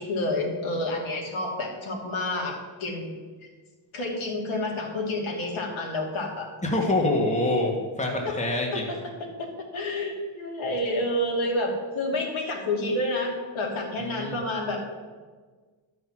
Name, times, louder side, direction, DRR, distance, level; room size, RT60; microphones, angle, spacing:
voice 1, 0.0-3.1 3.9-6.5 8.2-8.3 8.7-8.8 9.4-14.8, left 1 dB, 70° left, -1 dB, 2.9 m, -29 dB
voice 2, 6.6-8.9 14.0-14.4, left 2 dB, 15° left, 0 dB, 1.8 m, -25 dB
11.5 x 6.2 x 7.5 m, 1.4 s
cardioid pair, 125°, 50 cm